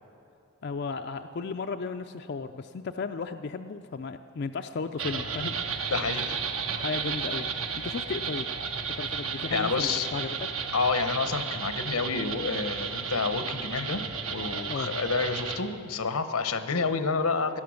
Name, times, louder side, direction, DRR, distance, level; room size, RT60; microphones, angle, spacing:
voice 1, 0.6-5.9 6.7-7.5 7.8-8.5 9.0-10.5 14.7-14.9, left 4 dB, 50° left, 7 dB, 0.4 m, -35 dB
sound 1, 5.0-15.6, right 6 dB, 70° right, 1.2 m, -33 dB
voice 2, 5.9-6.4 9.5-10.1 10.7-14.0 14.3-17.6, left 4 dB, 85° left, 10 dB, 1.0 m, -29 dB
18.5 x 11.5 x 6.4 m, 2.6 s
head